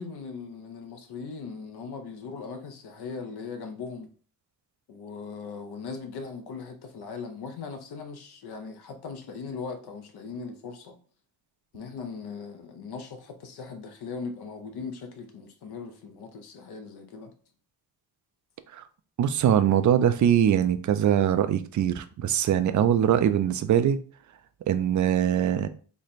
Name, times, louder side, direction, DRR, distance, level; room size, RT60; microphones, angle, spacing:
voice 1, 0.0-4.1 4.9-10.9 11.7-17.3, left 5 dB, 70° left, 0.7 m, -39 dB
voice 2, 19.2-24.0 24.7-25.7, right 9 dB, 50° right, 0.4 m, -22 dB
3.2 x 2.2 x 4.0 m
cardioid pair, 95°, 40 cm